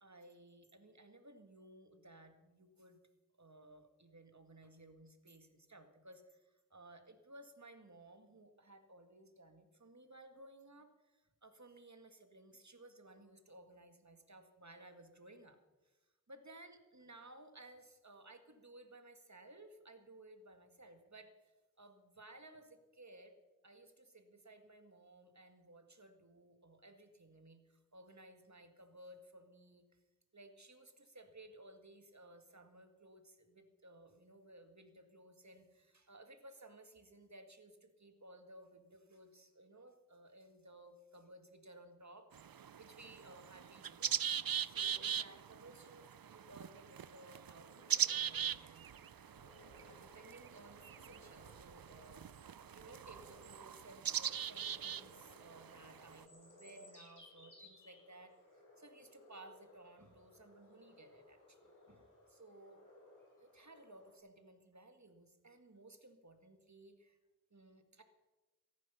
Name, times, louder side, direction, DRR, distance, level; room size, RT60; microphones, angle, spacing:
voice 1, 0.0-3.0 3.4-15.6 15.8-15.9 16.3-23.3 23.6-29.8 30.3-42.3 42.8-44.2 44.6-48.9 49.8-61.6 61.9-62.8 63.4-67.2 67.5-68.0, right 1 dB, 55° right, 7 dB, 2.0 m, -58 dB
sound 1, 42.3-56.2, right 8 dB, 80° right, 0.5 m, -41 dB
sound 2, 47.6-64.2, left 2 dB, 60° left, 5.9 m, -63 dB
17.5 x 14.0 x 5.7 m, 1.1 s
wide cardioid pair, 45°, 35 cm